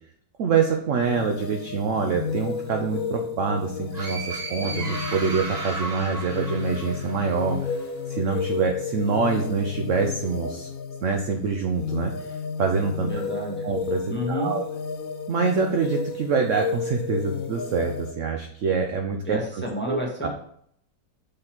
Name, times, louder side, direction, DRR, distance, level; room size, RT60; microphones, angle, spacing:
voice 1, 0.4-7.8 8.1-10.7 11.0-13.1 13.6-14.6 15.3-20.3, right 5 dB, 60° right, 4 dB, 0.8 m, -26 dB
sound 1, 1.0-18.1, left 6 dB, 65° left, 0.9 m, -32 dB
sound 2, 3.9-7.6, right 2 dB, 30° right, 0.7 m, -34 dB
voice 2, 13.0-13.6 14.1-14.5 19.2-20.3, equal, 5° left, -2 dB, 1.1 m, -30 dB
6.5 x 4.0 x 4.5 m, 0.66 s
omnidirectional pair, 1.9 m